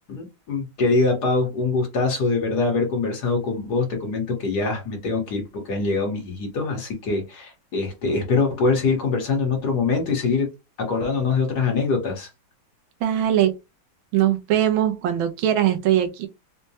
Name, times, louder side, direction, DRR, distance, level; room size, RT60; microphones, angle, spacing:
voice 1, 0.1-10.5 10.8-12.3, left 4 dB, 60° left, 1.7 m, -23 dB
voice 2, 13.0-13.6 14.1-16.3, right 11 dB, 85° right, 1.5 m, -21 dB
4.5 x 2.2 x 2.8 m
omnidirectional pair, 2.2 m